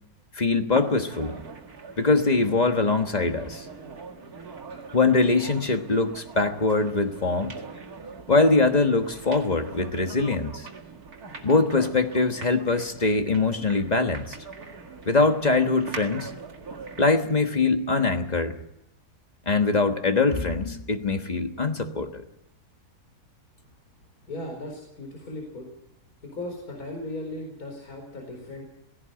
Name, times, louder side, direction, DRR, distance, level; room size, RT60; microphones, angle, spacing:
voice 1, 0.3-1.4 2.0-3.6 4.9-7.5 8.3-10.7 11.4-14.4 15.0-16.3 17.0-18.6 19.5-22.2, left 3 dB, 25° left, 6 dB, 1.4 m, -23 dB
sound 1, 0.7-17.2, right 4 dB, 65° right, 2.5 m, -42 dB
voice 2, 24.3-25.7 26.2-28.6, left 1 dB, 65° left, 1 dB, 5.0 m, -37 dB
17.5 x 16.5 x 8.9 m, 0.81 s
omnidirectional pair, 1.7 m